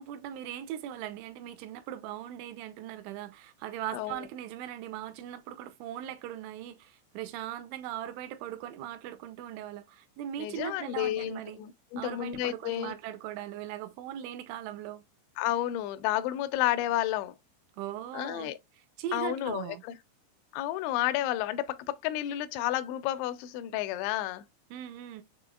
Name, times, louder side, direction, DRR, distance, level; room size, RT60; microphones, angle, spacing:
voice 1, 0.0-11.6 12.0-15.0 17.8-18.6 19.0-19.8 24.7-25.2, right 11 dB, 85° right, 3.0 m, -39 dB
voice 2, 3.9-4.3 10.4-12.9 15.4-17.3 18.1-18.6 19.1-20.0 20.5-24.5, left 13 dB, 85° left, 2.7 m, -31 dB
6.8 x 3.1 x 2.3 m
omnidirectional pair, 5.5 m